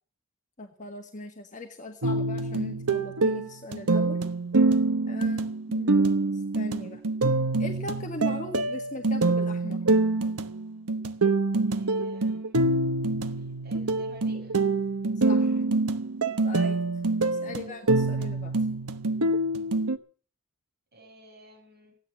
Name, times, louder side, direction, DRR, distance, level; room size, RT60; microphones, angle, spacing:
voice 1, 0.6-4.2 5.1-5.4 5.7-6.0 6.3-7.0 7.6-9.8 15.2-15.6 16.4-16.8 17.4-18.6, left 2 dB, 35° left, 4 dB, 1.6 m, -39 dB
sound 1, 2.0-20.0, right 2 dB, 85° right, 1.2 m, -25 dB
voice 2, 11.7-12.8 13.3-14.6 17.3-17.6 20.9-22.0, right 2 dB, 45° right, 0 dB, 7.0 m, -53 dB
16.0 x 9.9 x 7.4 m, 0.42 s
head